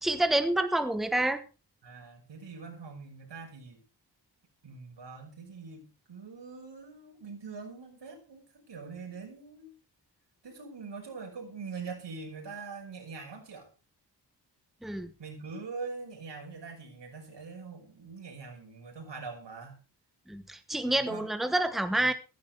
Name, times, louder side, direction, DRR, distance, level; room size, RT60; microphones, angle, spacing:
voice 1, 0.0-1.4 14.8-15.1 20.3-22.1, right 1 dB, ahead, 9 dB, 1.2 m, -28 dB
voice 2, 1.8-3.8 4.6-9.7 10.4-13.7 15.2-19.7 20.8-21.3, right 4 dB, 90° right, 2 dB, 6.0 m, -43 dB
15.5 x 15.0 x 3.5 m, 0.32 s
wide cardioid pair, 170°, 41 cm